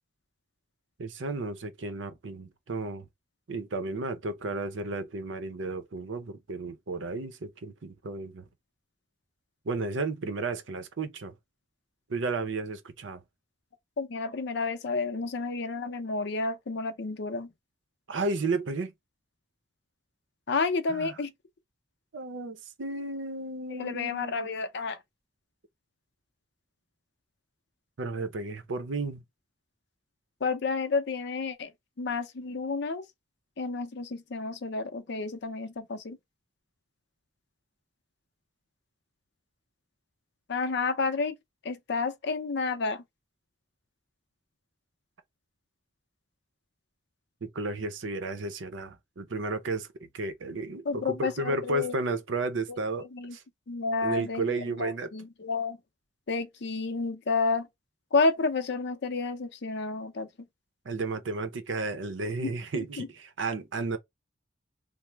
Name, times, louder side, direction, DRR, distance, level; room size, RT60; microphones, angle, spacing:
voice 1, 1.0-3.0 3.5-8.4 9.7-11.3 12.1-13.2 18.1-18.9 20.9-21.1 22.1-24.5 28.0-29.2 47.4-49.9 50.1-53.1 53.3-53.4 54.0-55.1 60.9-64.0, right 3 dB, 80° right, 0.6 m, -33 dB
voice 2, 14.0-17.5 20.5-21.3 23.7-25.0 30.4-31.7 32.0-33.0 33.6-36.2 40.5-41.4 41.6-43.0 50.8-51.9 53.0-53.4 53.7-55.8 56.3-57.7 58.1-60.3 62.4-63.1, left 4 dB, 65° left, 0.6 m, -30 dB
3.0 x 2.0 x 3.3 m
head